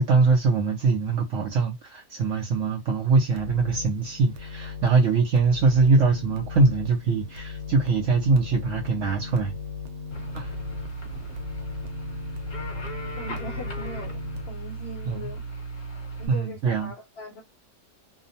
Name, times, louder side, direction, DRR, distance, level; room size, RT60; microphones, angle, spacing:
voice 1, 0.0-9.5 10.3-10.5 15.1-15.3 16.3-16.9, right 4 dB, 70° right, 0.8 m, -22 dB
sound 1, 3.1-14.5, left 5 dB, 85° right, 1.2 m, -38 dB
sound 2, 10.1-16.3, right 3 dB, 35° left, 1.0 m, -36 dB
voice 2, 13.2-15.4 16.2-17.4, left 1 dB, 60° left, 0.6 m, -40 dB
2.8 x 2.0 x 2.6 m
omnidirectional pair, 1.8 m